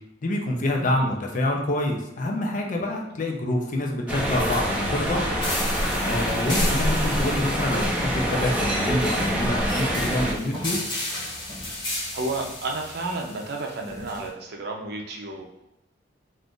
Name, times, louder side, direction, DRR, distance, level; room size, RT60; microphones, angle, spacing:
voice 1, 0.2-5.3 6.0-10.8, left 1 dB, 45° left, 1 dB, 0.5 m, -26 dB
voice 2, 0.8-1.1 3.0-3.1 11.9-15.6, right 2 dB, 60° right, 1 dB, 0.6 m, -32 dB
sound 1, 4.1-10.3, equal, 10° right, 0.5 m, -25 dB
sound 2, 5.4-14.3, left 1 dB, 25° left, 1.0 m, -34 dB
2.5 x 2.4 x 3.6 m, 0.84 s
head